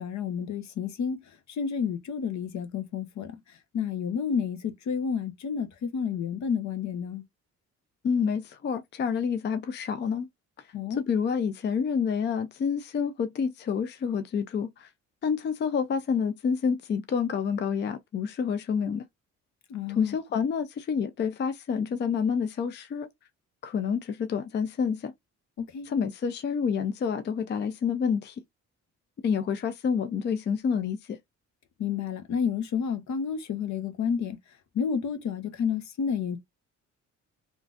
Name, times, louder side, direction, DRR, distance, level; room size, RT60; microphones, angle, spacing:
voice 1, 0.0-7.2 10.7-11.0 19.7-20.2 25.7-25.9 31.8-34.4 34.7-36.4, left 6 dB, 65° left, 0.9 m, -30 dB
voice 2, 8.0-10.3 11.0-14.9 15.2-19.0 19.9-23.1 23.6-25.1 25.9-28.4 29.2-31.2, left 6 dB, 35° left, 0.4 m, -28 dB
3.6 x 2.5 x 2.4 m
cardioid pair, 90°, 30 cm